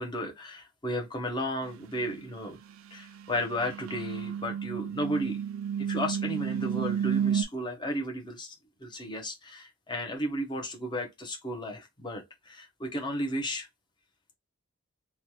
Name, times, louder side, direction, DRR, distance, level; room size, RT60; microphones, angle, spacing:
voice 1, 0.0-2.6 2.9-5.4 5.9-8.5 8.8-13.7, equal, 20° left, 0.7 m, -34 dB
sound 1, 2.0-2.2 3.2-7.4, right 8 dB, 65° right, 0.3 m, -31 dB
3.1 x 2.2 x 2.8 m
head